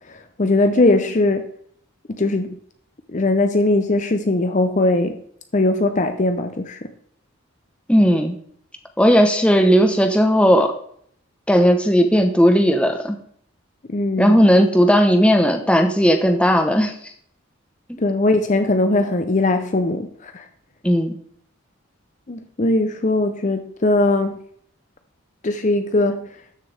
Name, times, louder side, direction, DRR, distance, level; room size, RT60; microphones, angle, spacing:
voice 1, 0.1-1.5 2.1-2.5 3.1-5.2 5.5-6.8 13.9-14.5 18.0-20.4 22.3-24.4 25.4-26.3, left 2 dB, 35° left, 0.6 m, -20 dB
voice 2, 7.9-8.4 9.0-10.7 11.5-13.2 14.2-16.9 17.9-18.0 20.8-21.2, equal, 5° left, 0.9 m, -16 dB
13.0 x 6.9 x 3.4 m
head